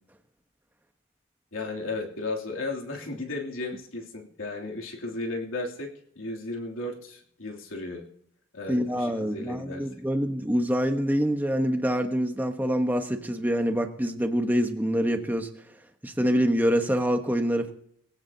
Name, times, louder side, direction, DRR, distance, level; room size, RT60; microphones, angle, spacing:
voice 1, 1.5-5.9 6.1-8.0 8.5-9.9, left 2 dB, 90° left, 0 dB, 3.0 m, -34 dB
voice 2, 8.7-15.5 16.0-17.7, equal, 10° right, 5 dB, 1.1 m, -25 dB
20.0 x 17.0 x 2.9 m, 0.68 s
head